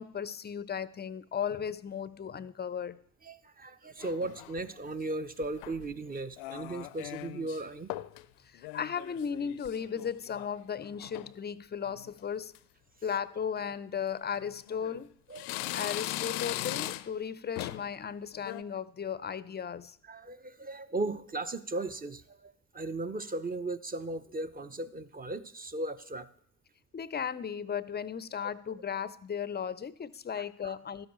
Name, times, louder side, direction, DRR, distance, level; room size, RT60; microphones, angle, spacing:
voice 1, 0.0-3.0 8.5-12.5 13.0-15.1 15.7-20.0 26.9-31.1, left 7 dB, 25° left, 0.5 m, -36 dB
voice 2, 3.2-7.9 15.3-15.5 20.1-26.3 30.6-30.8, right 2 dB, 20° right, 0.7 m, -37 dB
sound 1, 4.0-4.7 5.4-5.9 6.4-7.6 7.9-8.2 8.6-10.5 10.8-11.3 11.9-12.2 12.5-12.6 13.6-13.7 14.4-15.0 15.3-17.2 17.6-17.9 18.3-18.6, left 17 dB, 70° left, 0.5 m, -39 dB
12.5 x 10.0 x 3.1 m
hypercardioid pair, 45°, 43 cm